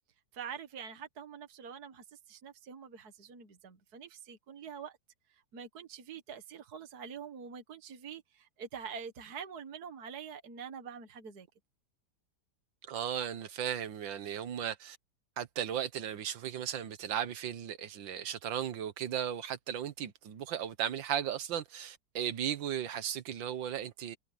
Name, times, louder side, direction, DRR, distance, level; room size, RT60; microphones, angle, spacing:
voice 1, 0.3-5.0 5.3-11.5, right 7 dB, 55° right, 2.1 m, -45 dB
voice 2, 12.9-15.0 15.4-24.2, right 9 dB, 85° right, 1.8 m, -36 dB
omnidirectional pair, 2.0 m